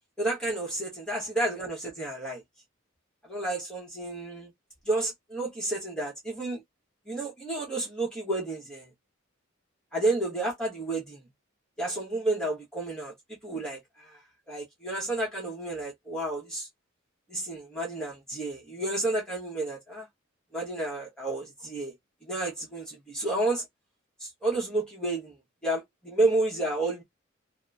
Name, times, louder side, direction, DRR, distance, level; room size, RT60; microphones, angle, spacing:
voice 1, 0.2-2.4 3.2-4.5 4.9-6.6 7.1-8.9 9.9-11.2 11.8-13.1 13.4-16.7 17.3-20.1 20.5-21.9 22.2-23.7 24.2-25.3 25.6-27.0, right 2 dB, 5° left, 0.9 m, -31 dB
2.9 x 2.0 x 2.3 m
head